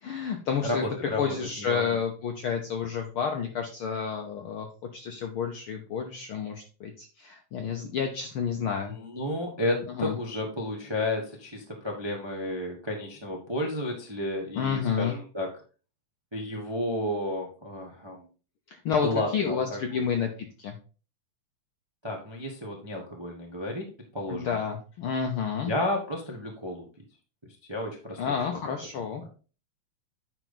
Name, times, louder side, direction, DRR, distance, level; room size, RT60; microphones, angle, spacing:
voice 1, 0.0-0.9 1.2-4.7 4.9-9.0 10.0-10.2 14.5-15.2 18.7-20.3 20.6-20.8 24.3-25.7 28.2-29.2, left 6 dB, 70° left, 4 dB, 1.3 m, -30 dB
voice 2, 0.6-2.0 8.6-15.5 16.3-18.3 19.0-20.1 22.0-23.8 24.1-24.5 25.7-26.8 27.7-28.6, left 1 dB, 20° right, 0 dB, 0.6 m, -32 dB
9.1 x 5.1 x 4.0 m, 0.36 s
omnidirectional pair, 3.3 m